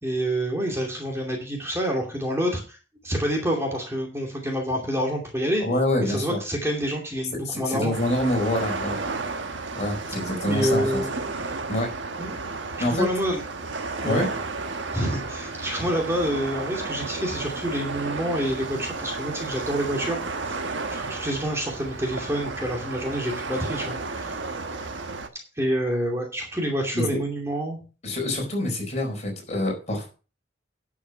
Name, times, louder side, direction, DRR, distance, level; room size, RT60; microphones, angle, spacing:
voice 1, 0.0-2.8 3.0-5.6 6.0-7.9 10.4-11.1 12.2-12.4 12.9-13.4 14.0-14.3 14.9-20.2 20.5-20.6 20.9-24.3 25.6-27.8, equal, 15° right, 0 dB, 2.5 m, -27 dB
voice 2, 5.6-6.4 7.4-9.0 9.8-10.8 11.7-11.9 12.8-13.0 14.0-14.3 26.9-27.2 28.0-30.1, left 1 dB, 35° left, 1 dB, 4.4 m, -26 dB
sound 1, 7.9-25.3, right 3 dB, 75° right, 1.4 m, -33 dB
11.0 x 6.4 x 5.8 m, 0.35 s
head